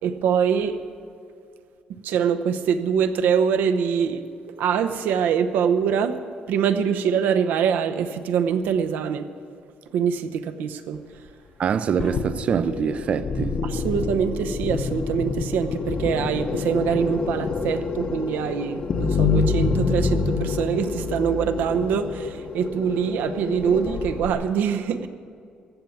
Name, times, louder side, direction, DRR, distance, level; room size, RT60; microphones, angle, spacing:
voice 1, 0.0-0.8 2.0-4.2 4.6-6.2 6.5-9.3 9.9-11.0 13.6-25.1, right 7 dB, 90° right, 0.8 m, -24 dB
voice 2, 11.6-13.6, right 7 dB, 45° right, 0.4 m, -24 dB
sound 1, 12.0-24.3, left 5 dB, 40° left, 0.8 m, -27 dB
15.0 x 7.2 x 9.3 m
cardioid pair, 150°, 3 cm